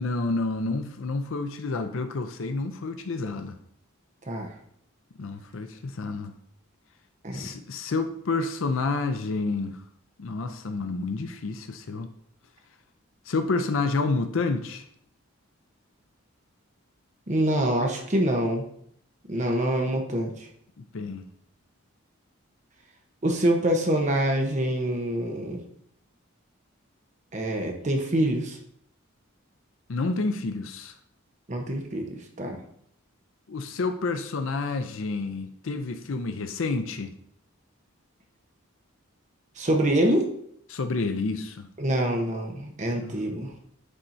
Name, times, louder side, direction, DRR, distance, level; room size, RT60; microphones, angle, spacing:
voice 1, 0.0-3.6 5.2-6.3 7.3-9.8 10.2-12.1 13.3-14.8 20.8-21.3 29.9-30.9 33.5-37.1 40.7-41.7 42.9-43.2, left 3 dB, 65° left, 0.5 m, -29 dB
voice 2, 17.3-18.6 19.3-20.5 23.2-25.6 27.3-28.6 31.5-32.6 39.6-40.3 41.8-43.5, right 1 dB, 35° right, 0.8 m, -25 dB
9.8 x 4.4 x 2.6 m
head